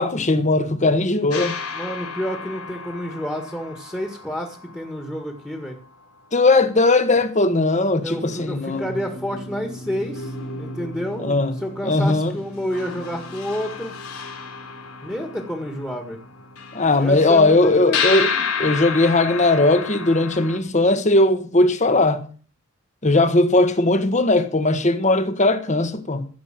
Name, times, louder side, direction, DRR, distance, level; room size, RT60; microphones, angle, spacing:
voice 1, 0.0-1.5 6.3-8.8 11.2-11.5 11.8-12.3 16.7-18.3 18.6-22.2 23.0-26.3, left 2 dB, 35° left, 1.4 m, -18 dB
sound 1, 1.3-6.2 7.7-7.8 8.1-20.6, left 5 dB, 90° left, 3.5 m, -32 dB
voice 2, 1.7-5.8 8.0-13.9 15.0-16.2 17.0-18.4, equal, 10° left, 1.8 m, -30 dB
16.0 x 7.0 x 7.7 m
head